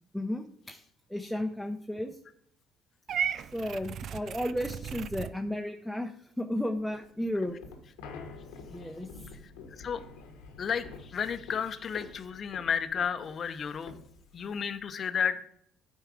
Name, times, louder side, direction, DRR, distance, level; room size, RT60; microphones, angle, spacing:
voice 1, 0.1-0.8 1.1-2.2 3.5-7.6 8.7-9.1, left 1 dB, ahead, 3 dB, 0.7 m, -33 dB
Purr / Meow, 3.1-5.3, right 8 dB, 55° right, 0.4 m, -35 dB
sound 1, 6.8-14.9, left 4 dB, 80° left, 1.2 m, -48 dB
voice 2, 10.6-14.0 14.3-15.5, left 7 dB, 50° left, 11 dB, 0.7 m, -32 dB
9.1 x 4.6 x 5.0 m, 0.70 s
hypercardioid pair, 60°, 0 cm